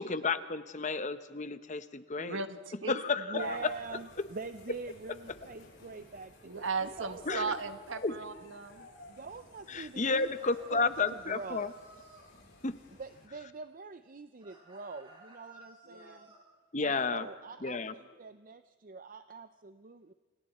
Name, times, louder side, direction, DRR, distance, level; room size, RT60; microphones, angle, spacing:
voice 1, 0.0-2.4 2.9-3.7 7.3-7.5 8.0-8.1 9.7-11.7 12.6-12.7 16.7-17.2 17.6-17.9, left 4 dB, 40° left, 12 dB, 0.9 m, -32 dB
voice 2, 2.2-3.0 3.3-3.7 6.4-8.9 15.9-16.2, right 4 dB, 75° right, 9 dB, 1.4 m, -37 dB
voice 3, 3.2-6.3 6.8-7.5 9.1-11.7 13.0-16.3 16.8-20.1, right 4 dB, 45° right, 10 dB, 0.6 m, -45 dB
sound 1, 3.4-13.3, left 2 dB, 70° left, 7.7 m, -57 dB
sound 2, 10.1-12.3 14.4-16.4, right 1 dB, 25° right, 6.1 m, -56 dB
29.0 x 27.5 x 4.3 m, 1.4 s
head